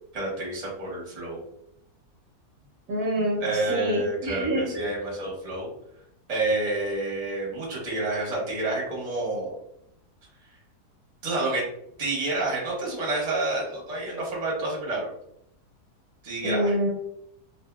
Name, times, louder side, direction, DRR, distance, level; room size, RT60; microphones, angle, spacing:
voice 1, 0.1-1.4 3.4-5.7 6.3-9.5 11.2-11.6 12.0-15.1 16.2-16.7, right 2 dB, 30° right, -4 dB, 0.8 m, -29 dB
voice 2, 2.9-4.7 16.4-16.9, equal, 70° right, -2 dB, 1.1 m, -26 dB
2.7 x 2.5 x 2.3 m, 0.76 s
omnidirectional pair, 1.7 m